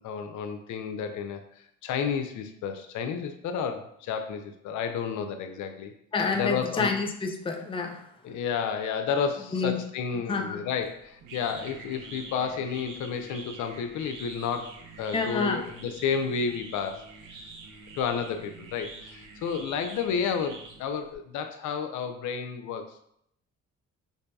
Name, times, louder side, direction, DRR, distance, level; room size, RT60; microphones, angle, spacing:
voice 1, 0.0-5.9 6.3-6.9 8.2-17.0 17.9-23.0, left 6 dB, 75° left, 7 dB, 0.5 m, -31 dB
voice 2, 6.1-8.1 9.5-9.8 10.1-10.7 15.1-15.6, left 4 dB, 15° left, 3 dB, 0.5 m, -28 dB
sound 1, 10.8-21.2, right 3 dB, 80° right, 0.7 m, -46 dB
5.2 x 2.7 x 2.3 m, 0.72 s
cardioid pair, 90°, 30 cm